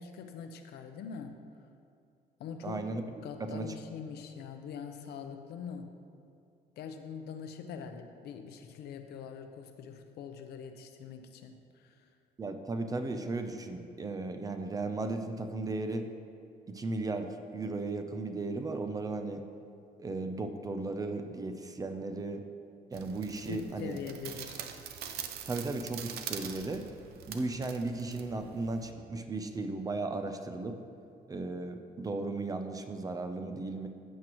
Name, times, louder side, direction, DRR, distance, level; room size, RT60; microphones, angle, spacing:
voice 1, 0.0-1.4 2.4-2.8 3.2-5.9 6.8-12.1 23.5-24.6, left 6 dB, 80° left, 6 dB, 0.8 m, -43 dB
voice 2, 2.6-3.0 3.4-3.7 12.4-16.1 16.7-19.4 20.0-22.4 22.9-24.0 25.4-26.9 27.3-30.8 31.3-33.9, right 3 dB, 20° right, 6 dB, 0.6 m, -35 dB
sound 1, 22.9-28.9, right 8 dB, 75° right, 0.7 m, -44 dB
14.5 x 7.6 x 3.1 m, 2.5 s
cardioid pair, 145°, 17 cm